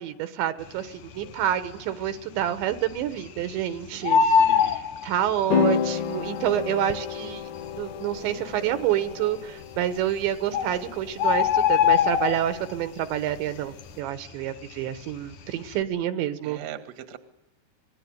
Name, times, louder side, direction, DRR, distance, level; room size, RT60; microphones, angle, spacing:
voice 1, 0.0-7.4 7.8-16.6, right 11 dB, 80° right, 10 dB, 3.5 m, -28 dB
Bird, 1.1-1.7 2.1-2.2 2.4-3.6 3.9-5.7 6.6-6.7 7.3-7.4 7.6-7.7 8.3-8.8 9.8-9.9 10.2-10.3 10.5-12.8 13.2-13.5 13.8-15.2 15.5-15.8, left 7 dB, 60° left, 2.5 m, -22 dB
voice 2, 3.9-4.7 16.4-17.2, right 9 dB, 50° right, 8 dB, 2.3 m, -40 dB
sound 1, 5.5-13.9, left 7 dB, 80° left, 1.8 m, -32 dB
26.5 x 21.0 x 8.0 m, 0.85 s
omnidirectional pair, 5.3 m